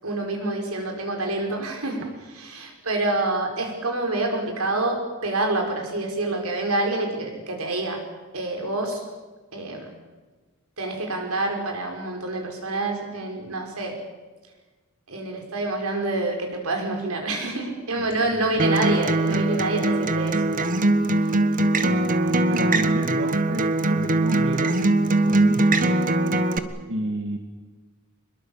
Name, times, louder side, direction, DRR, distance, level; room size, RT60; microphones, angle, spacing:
voice 1, 0.0-2.0 2.4-8.0 8.3-9.0 9.5-9.9 10.8-14.0 15.1-20.3, right 2 dB, 90° right, 3 dB, 5.5 m, -27 dB
voice 2, 18.3-18.8 20.0-20.3 21.8-22.1 22.5-24.8 25.1-26.1 26.9-27.4, right 1 dB, 60° right, 3 dB, 2.1 m, -31 dB
Acoustic guitar, 18.6-26.6, right 2 dB, 40° right, 1.3 m, -21 dB
25.5 x 21.5 x 7.4 m, 1.3 s
head